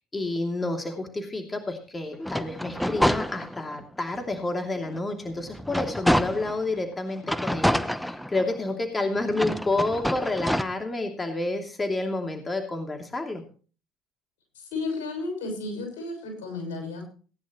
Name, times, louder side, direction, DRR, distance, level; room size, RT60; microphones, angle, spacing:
voice 1, 0.1-13.4, left 2 dB, 20° left, 4 dB, 2.8 m, -29 dB
sound 1, 2.2-3.8 4.3-4.4 4.9-6.6 7.2-8.7 9.3-10.6, equal, ahead, 0.9 m, -27 dB
voice 2, 14.5-17.0, left 3 dB, 85° left, 3 dB, 6.4 m, -33 dB
18.5 x 10.5 x 3.1 m, 0.38 s
hypercardioid pair, 75°, 0 cm